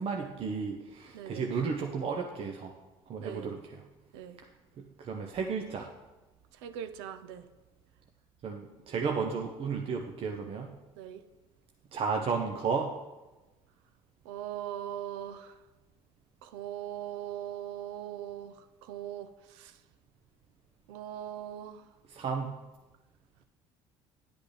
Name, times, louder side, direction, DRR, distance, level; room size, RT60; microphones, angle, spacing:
voice 1, 0.0-2.7 3.1-3.8 4.8-5.9 8.4-10.7 11.9-12.9 22.1-22.5, right 5 dB, 45° right, 3 dB, 0.9 m, -33 dB
voice 2, 1.1-1.5 3.2-3.6 4.1-4.4 6.6-7.5 11.0-11.2 14.2-15.6 16.4-19.8 20.9-21.8, right 10 dB, 75° right, 10 dB, 0.6 m, -40 dB
10.5 x 8.2 x 3.3 m, 1.1 s
hypercardioid pair, 65°, 13 cm